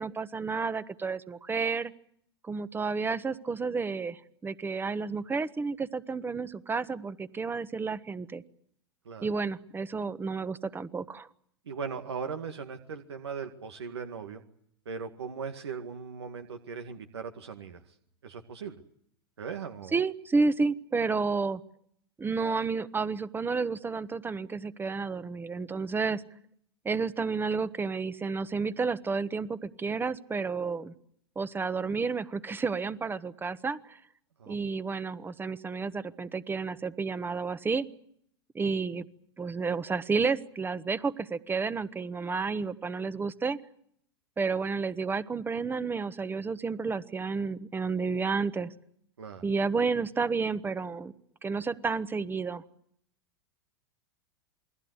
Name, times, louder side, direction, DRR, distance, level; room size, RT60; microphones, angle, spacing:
voice 1, 0.0-1.9 2.4-8.4 9.2-11.3 19.9-21.6 22.2-26.2 26.8-30.9 31.3-34.0 34.5-37.9 38.5-39.0 39.4-43.6 44.4-48.7 49.4-51.1 51.4-52.6, right 4 dB, 15° right, 14 dB, 1.3 m, -31 dB
voice 2, 11.7-14.4 14.9-17.9 18.2-18.8 19.4-20.0 34.4-34.6 49.2-49.5, right 6 dB, 85° right, 6 dB, 2.0 m, -39 dB
28.5 x 21.5 x 8.1 m, 0.70 s
hypercardioid pair, 105°, 13 cm